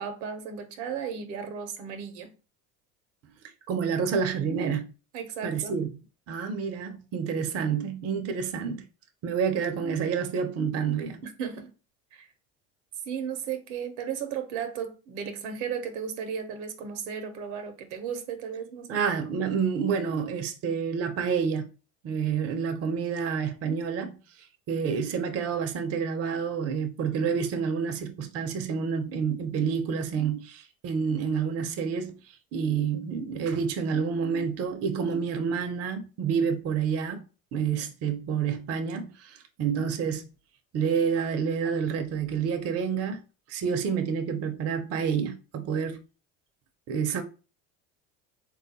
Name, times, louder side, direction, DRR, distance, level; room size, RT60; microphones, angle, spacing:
voice 1, 0.0-2.3 5.1-5.8 11.2-11.7 12.1-12.3 13.0-19.0, right 7 dB, 75° right, 0.7 m, -35 dB
voice 2, 3.7-4.9 5.4-5.9 6.3-8.9 9.2-11.2 18.9-21.7 22.0-24.2 24.7-32.2 32.5-37.2 37.5-40.2 40.7-43.2 43.5-46.0 46.9-47.2, right 6 dB, 40° right, 0.6 m, -28 dB
3.3 x 2.3 x 2.7 m
supercardioid pair, 95°, 37 cm